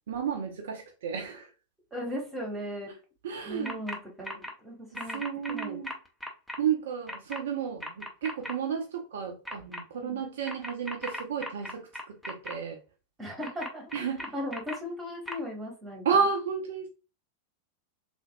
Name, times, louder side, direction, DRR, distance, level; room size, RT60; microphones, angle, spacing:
voice 1, 0.1-1.5 3.2-3.8 5.1-5.9 6.6-12.8 13.9-14.3 16.0-16.9, right 6 dB, 60° right, 0.4 m, -32 dB
voice 2, 1.9-2.9 3.4-5.2 5.5-5.8 10.0-10.2 13.2-16.0, left 1 dB, 15° right, 1.2 m, -37 dB
sound 1, 3.6-4.0 4.2-4.5 4.9-6.6 7.1-7.4 7.8-8.5 9.4-9.8 10.4-12.5 13.4-14.7 15.3-15.4, left 1 dB, 5° left, 0.6 m, -37 dB
3.4 x 2.5 x 2.2 m
figure-of-eight pair, 90°, 0 cm